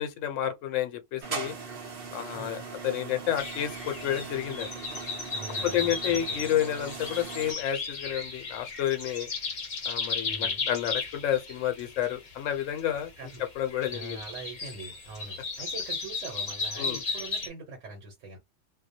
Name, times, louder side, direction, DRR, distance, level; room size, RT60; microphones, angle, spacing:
voice 1, 0.0-1.5 2.1-4.7 5.6-9.3 9.8-13.1 13.6-14.2 16.8-17.0, left 11 dB, 80° left, 0.9 m, -30 dB
sound 1, 1.2-7.5, right 5 dB, 55° right, 0.8 m, -40 dB
voice 2, 2.3-2.6 5.3-6.5 10.2-10.7 13.2-13.4 13.9-18.4, right 3 dB, 75° right, 1.1 m, -43 dB
sound 2, 3.4-17.5, left 4 dB, 45° left, 0.7 m, -35 dB
2.3 x 2.0 x 2.6 m
omnidirectional pair, 1.3 m